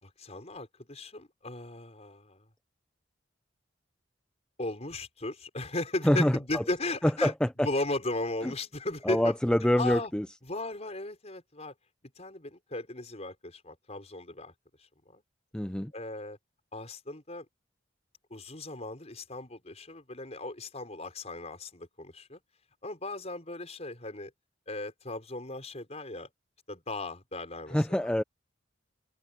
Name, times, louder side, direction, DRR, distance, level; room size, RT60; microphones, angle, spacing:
voice 1, 0.0-2.5 4.6-7.3 7.6-9.3 9.8-10.1 10.5-11.7 12.2-14.5 15.1-15.2 15.9-16.4 16.7-17.5 18.3-22.4 22.8-24.3 24.7-26.3 26.7-28.1, left 2 dB, 35° left, 5.6 m, -36 dB
voice 2, 6.0-6.6 7.0-7.7 8.4-8.5 9.0-10.3 15.5-15.9 27.7-28.2, equal, 5° left, 0.5 m, -26 dB
head